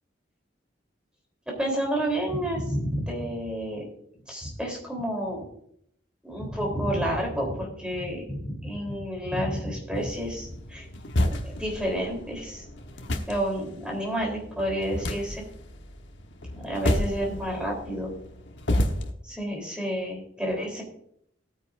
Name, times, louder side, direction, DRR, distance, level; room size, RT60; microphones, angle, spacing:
voice 1, 1.5-3.8 4.3-5.4 6.2-10.9 11.2-12.6 13.3-15.4 16.5-18.1 19.2-20.8, equal, 5° right, -1 dB, 3.6 m, -30 dB
sound 1, 9.9-19.1, left 1 dB, 70° left, 1.2 m, -31 dB
18.0 x 9.2 x 2.6 m, 0.69 s
head